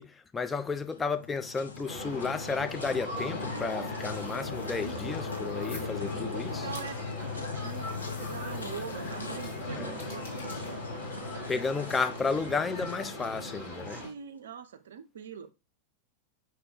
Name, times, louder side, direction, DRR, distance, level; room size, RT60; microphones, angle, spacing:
voice 1, 0.0-6.7 9.7-10.0 11.5-14.0, left 4 dB, 15° left, 0.4 m, -33 dB
sound 1, 0.8-14.1, left 5 dB, 80° left, 0.5 m, -40 dB
sound 2, 1.8-14.1, left 1 dB, 45° left, 1.9 m, -40 dB
sound 3, 3.2-12.5, left 3 dB, 65° left, 1.6 m, -54 dB
voice 2, 5.8-11.6 13.9-15.5, right 8 dB, 65° right, 0.4 m, -44 dB
5.6 x 2.3 x 3.6 m
figure-of-eight pair, 90°, 0 cm